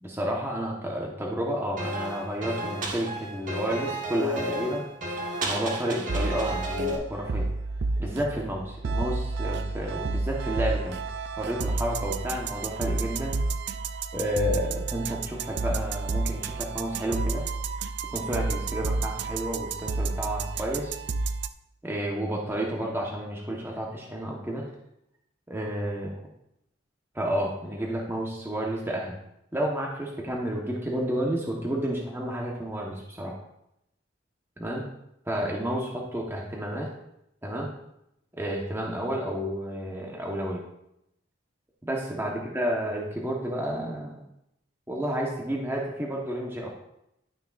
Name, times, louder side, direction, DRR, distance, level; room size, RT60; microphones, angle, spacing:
voice 1, 0.0-4.8 5.4-7.5 8.0-11.0 11.4-13.4 14.1-17.4 18.1-21.0 21.8-24.7 25.5-26.1 27.1-29.2 29.5-33.3 34.6-34.8 35.3-36.9 37.4-37.7 38.4-40.6 41.8-44.2 44.9-46.7, equal, 15° right, -2 dB, 1.1 m, -31 dB
sound 1, 1.8-7.0, equal, 45° right, 1.4 m, -32 dB
sound 2, 6.1-21.5, right 3 dB, 60° right, 0.4 m, -31 dB
11.5 x 6.6 x 2.5 m, 0.81 s
head